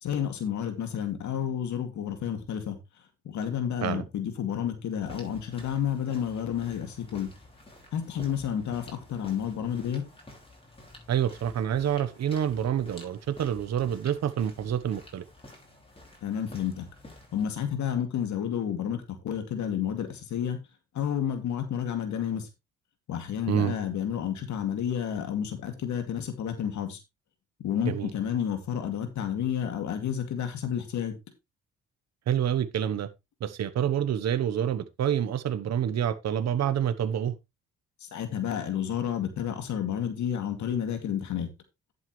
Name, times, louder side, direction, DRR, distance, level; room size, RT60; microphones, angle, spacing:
voice 1, 0.0-2.8 3.2-7.3 7.9-10.0 16.2-16.9 17.3-20.6 20.9-22.5 23.1-27.0 27.6-31.1 38.0-41.5, left 9 dB, 70° left, 2.4 m, -30 dB
sound 1, 5.0-17.5, left 1 dB, 20° left, 5.8 m, -50 dB
voice 2, 11.1-15.2 23.5-23.8 27.8-28.1 32.3-33.1 33.4-37.3, right 9 dB, 60° right, 1.1 m, -27 dB
11.0 x 8.1 x 3.2 m
cardioid pair, 90°, 30 cm